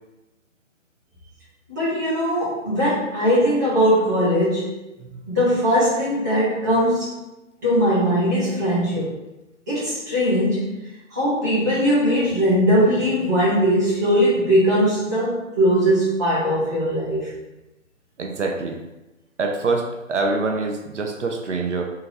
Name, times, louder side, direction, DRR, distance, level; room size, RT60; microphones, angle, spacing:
voice 1, 1.7-4.7 5.3-7.1 7.6-9.1 9.7-10.7 11.1-17.3, equal, 15° right, -11 dB, 0.5 m, -20 dB
voice 2, 18.2-18.8 19.4-21.9, right 3 dB, 65° right, 2 dB, 0.5 m, -25 dB
2.8 x 2.5 x 2.9 m, 1.0 s
figure-of-eight pair, 135°, 40 cm